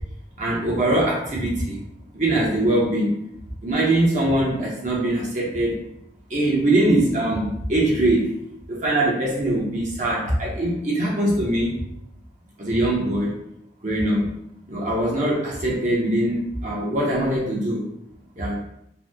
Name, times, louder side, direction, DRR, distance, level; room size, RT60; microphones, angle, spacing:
voice 1, 0.4-1.8 2.1-3.2 3.6-5.8 6.3-8.4 8.7-11.8 12.6-13.4 13.8-14.3 14.7-17.9 18.4-18.6, right 1 dB, 40° right, -5 dB, 0.7 m, -22 dB
2.7 x 2.1 x 3.4 m, 0.78 s
head